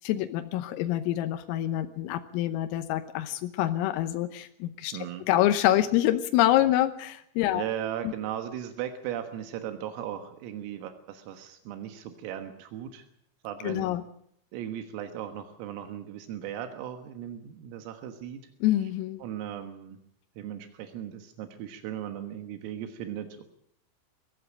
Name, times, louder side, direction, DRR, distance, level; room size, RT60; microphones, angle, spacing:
voice 1, 0.0-4.9 5.3-7.6 8.0-8.1 13.6-14.0 18.6-19.2, left 13 dB, 90° left, 8 dB, 3.7 m, -26 dB
voice 2, 4.9-5.3 7.5-13.1 13.4-13.9 14.5-18.4 19.2-20.0 20.4-23.4, right 10 dB, 85° right, 7 dB, 4.1 m, -37 dB
21.5 x 15.0 x 9.0 m, 0.67 s
omnidirectional pair, 5.9 m